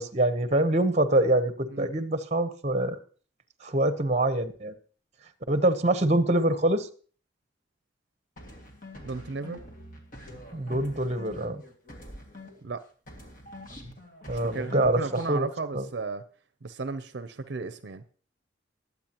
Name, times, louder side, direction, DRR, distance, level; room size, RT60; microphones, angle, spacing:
voice 1, 0.0-3.0 3.6-4.7 5.5-6.9 10.5-11.6 14.3-15.5 15.7-15.9, right 1 dB, 35° right, 0.9 m, -25 dB
sound 1, 8.4-12.8 13.1-15.4, left 1 dB, 45° left, 2.1 m, -45 dB
voice 2, 9.0-9.6 12.6-12.8 14.3-16.2 16.6-18.0, right 4 dB, 60° right, 0.6 m, -34 dB
20.5 x 8.3 x 3.0 m
head